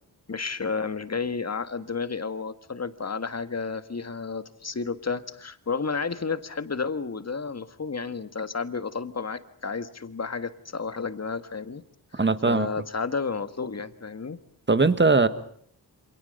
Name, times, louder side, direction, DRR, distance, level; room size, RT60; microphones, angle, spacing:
voice 1, 0.3-11.8 12.1-14.4, left 5 dB, 40° left, 11 dB, 1.8 m, -31 dB
voice 2, 12.1-12.7 14.7-15.3, right 3 dB, 30° right, 12 dB, 1.7 m, -20 dB
28.5 x 26.5 x 5.4 m, 0.62 s
wide cardioid pair, 100°, 39 cm